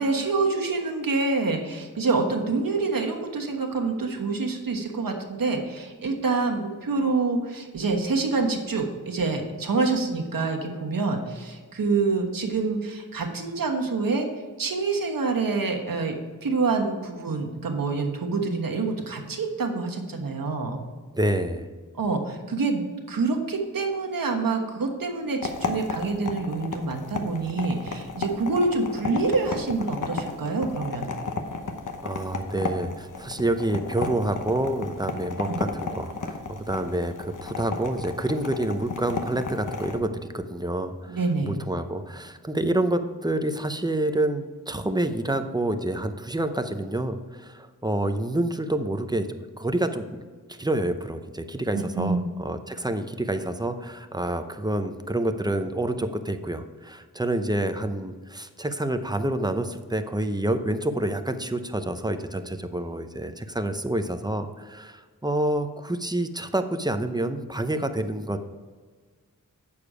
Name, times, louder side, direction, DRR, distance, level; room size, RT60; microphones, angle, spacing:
voice 1, 0.0-14.3 14.6-16.1 16.4-20.8 21.9-22.8 23.1-31.1 35.4-35.6 41.1-41.6 51.7-52.3, right 3 dB, 80° right, 2 dB, 1.3 m, -26 dB
voice 2, 21.1-21.7 32.0-36.4 36.7-68.4, right 1 dB, 10° right, 8 dB, 0.6 m, -28 dB
sound 1, 25.4-40.0, left 4 dB, 65° left, 1.0 m, -34 dB
8.6 x 6.8 x 4.9 m, 1.5 s
wide cardioid pair, 95°, 33 cm